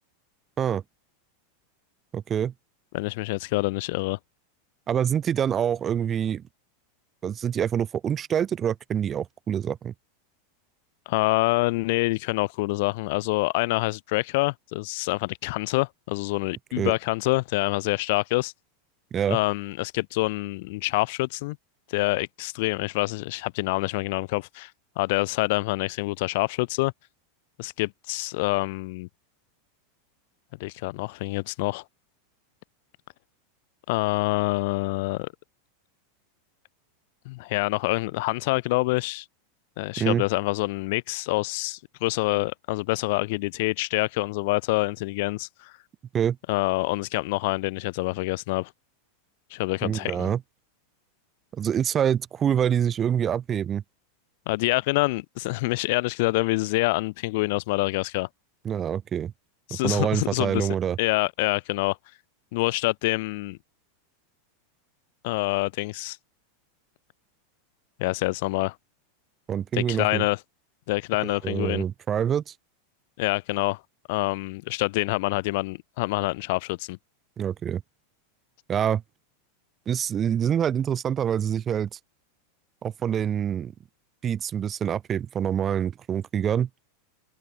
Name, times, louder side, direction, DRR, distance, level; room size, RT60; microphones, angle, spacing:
voice 1, 2.1-2.5 4.9-6.4 7.2-9.9 16.8-16.9 19.1-19.4 40.0-40.2 46.1-46.4 49.8-50.4 51.6-53.8 58.6-59.3 59.7-61.0 69.5-70.3 71.2-72.5 77.4-77.8 78.7-79.0 79.9-82.0 82.8-83.7 84.2-86.7, right 9 dB, 25° right, 0.3 m, -26 dB
voice 2, 2.9-4.2 11.1-18.5 19.3-21.6 21.9-24.7 25.0-26.9 27.6-29.1 30.6-31.8 33.9-35.3 37.3-39.2 39.8-45.7 46.5-48.7 49.5-50.3 54.5-58.3 59.7-60.7 61.0-62.0 62.5-63.6 65.2-66.2 68.0-68.7 69.7-70.4 70.9-71.8 73.2-73.8 74.1-77.0, left 23 dB, 60° left, 0.5 m, -26 dB
open air
supercardioid pair, 125°, 0 cm